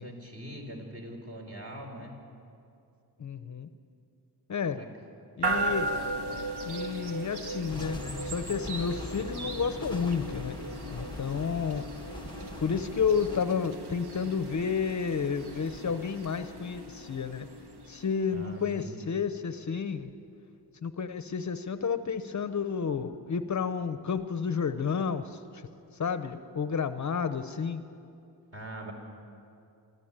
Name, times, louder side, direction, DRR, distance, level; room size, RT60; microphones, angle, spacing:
voice 1, 0.0-2.2 4.7-4.9 18.3-19.1 28.5-28.9, equal, 35° right, 1 dB, 4.2 m, -42 dB
voice 2, 3.2-3.7 4.5-4.8 5.4-5.9 6.6-10.6 10.9-11.8 12.6-17.5 17.9-20.1 20.8-25.6 25.9-27.8, left 6 dB, 45° left, 10 dB, 0.8 m, -31 dB
sound 1, 5.4-18.4, right 2 dB, 70° right, 2.0 m, -37 dB
sound 2, 7.7-13.4, left 2 dB, 10° left, 1.1 m, -42 dB
24.5 x 14.0 x 8.9 m, 2.6 s
wide cardioid pair, 125°, 40 cm